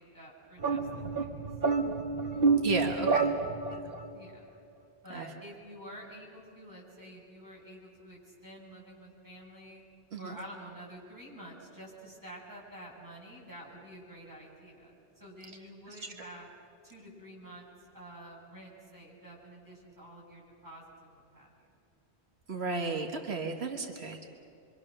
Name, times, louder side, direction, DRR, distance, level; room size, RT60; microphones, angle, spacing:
voice 1, 0.0-1.5 3.7-4.4 5.0-9.8 10.2-16.5 16.8-17.7 17.9-21.5, right 1 dB, 20° right, -4 dB, 7.1 m, -49 dB
sound 1, 0.6-4.1, right 4 dB, 60° right, 1.5 m, -29 dB
voice 2, 2.6-3.3 3.7-3.9 5.1-5.3 10.1-10.4 15.9-16.1 22.5-24.3, right 3 dB, 80° right, 3 dB, 1.7 m, -34 dB
26.5 x 24.0 x 6.6 m, 2.7 s
omnidirectional pair, 1.1 m